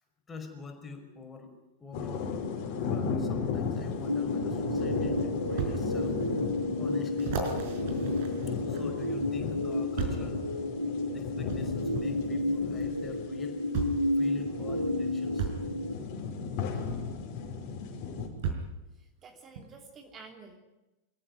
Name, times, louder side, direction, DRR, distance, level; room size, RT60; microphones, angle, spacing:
voice 1, 0.3-2.3 2.7-6.2 6.8-7.5 8.5-10.4 11.1-13.6 14.2-15.5, left 4 dB, 15° left, 4 dB, 5.3 m, -46 dB
sound 1, 1.9-18.3, left 5 dB, 45° left, 5.5 m, -35 dB
sound 2, 4.0-15.9, left 1 dB, 90° left, 1.8 m, -32 dB
sound 3, 4.5-4.6 5.6-5.8 6.4-6.5 7.2-9.1 10.0-10.3 11.5-11.6 12.9-13.0 13.7-14.1 15.4-15.6 17.3-17.4 18.4-18.8 19.5-19.7, right 6 dB, 50° right, 5.0 m, -34 dB
voice 2, 19.0-20.6, right 4 dB, 25° right, 3 dB, 3.0 m, -51 dB
27.5 x 14.5 x 9.7 m, 1.0 s
figure-of-eight pair, 90°, 0 cm